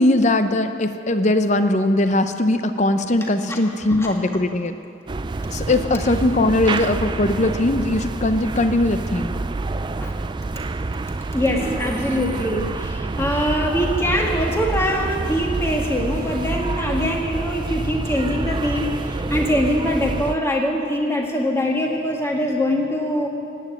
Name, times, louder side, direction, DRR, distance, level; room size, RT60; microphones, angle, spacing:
voice 1, 0.0-4.7 5.5-9.3, left 1 dB, 35° left, 9 dB, 0.7 m, -20 dB
sound 1, 5.1-20.4, right 3 dB, 25° right, 0.3 m, -27 dB
voice 2, 11.3-23.3, equal, 15° left, 0 dB, 1.7 m, -23 dB
17.5 x 9.2 x 8.8 m, 2.5 s
head